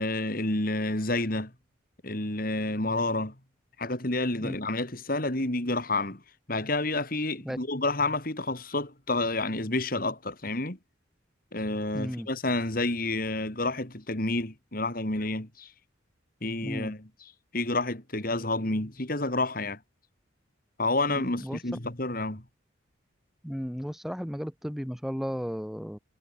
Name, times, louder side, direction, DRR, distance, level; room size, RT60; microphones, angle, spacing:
voice 1, 0.0-1.5 2.0-3.3 3.8-6.2 6.5-10.8 11.5-15.7 16.4-17.1 17.5-19.8 20.8-22.4, left 2 dB, 45° left, 3.1 m, -29 dB
voice 2, 11.9-12.3 16.6-16.9 21.1-21.6 23.4-26.0, equal, ahead, 1.6 m, -34 dB
head